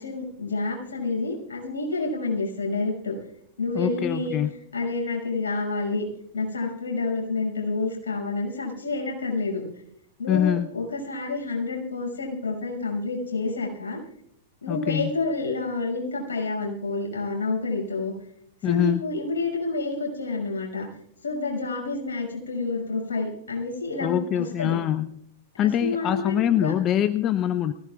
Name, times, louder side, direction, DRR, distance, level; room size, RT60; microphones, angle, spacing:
voice 1, 0.0-3.1 3.6-4.4 4.7-6.0 6.3-9.6 10.2-14.0 14.6-18.1 18.6-20.9 21.2-24.8 25.8-26.7, left 3 dB, 80° left, -1 dB, 6.3 m, -29 dB
voice 2, 3.7-4.5 10.3-10.7 14.7-15.1 18.6-19.0 24.0-25.1 25.6-27.7, left 11 dB, 35° left, 12 dB, 0.7 m, -24 dB
23.0 x 16.5 x 2.4 m, 0.71 s
hypercardioid pair, 100°, 0 cm